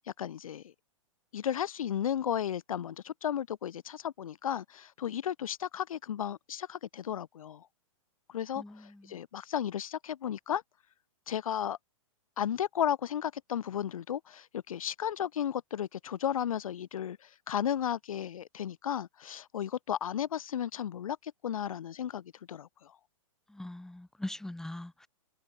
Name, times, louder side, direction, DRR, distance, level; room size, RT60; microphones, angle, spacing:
voice 1, 0.2-0.7 1.3-7.7 8.3-10.6 11.3-11.8 12.4-22.9, left 9 dB, 85° left, 0.5 m, -34 dB
voice 2, 8.6-9.2 23.5-25.1, left 1 dB, 5° left, 1.4 m, -41 dB
hypercardioid pair, 135°, 17 cm